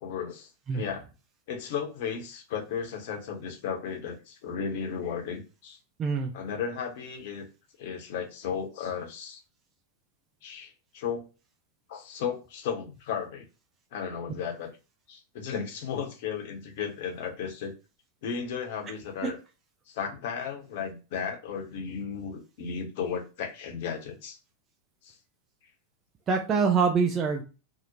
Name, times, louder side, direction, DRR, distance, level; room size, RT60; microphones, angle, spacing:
voice 1, 0.0-1.0 1.5-5.8 6.3-7.5 7.8-9.4 10.4-11.3 11.9-13.4 13.9-14.7 15.1-17.7 18.2-19.4 19.9-24.4 25.0-25.2, left 7 dB, 50° left, 2 dB, 0.7 m, -34 dB
voice 2, 6.0-6.3 26.3-27.4, right 5 dB, 25° right, 1 dB, 0.5 m, -24 dB
2.8 x 2.1 x 2.6 m, 0.31 s
figure-of-eight pair, 90°, 0 cm